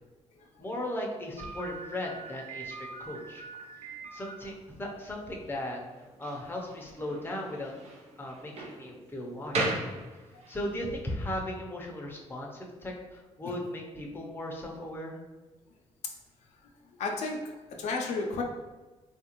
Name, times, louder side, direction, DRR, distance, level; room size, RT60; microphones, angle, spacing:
voice 1, 0.6-3.4 4.1-5.8 6.2-7.7 8.2-9.8 10.5-15.2, left 1 dB, 20° left, 0 dB, 0.6 m, -37 dB
Slam, 1.4-10.7, right 2 dB, 65° right, 0.8 m, -39 dB
voice 2, 17.0-18.4, left 3 dB, 85° left, 0 dB, 0.5 m, -32 dB
3.4 x 2.4 x 2.9 m, 1.2 s
cardioid pair, 90°, 12 cm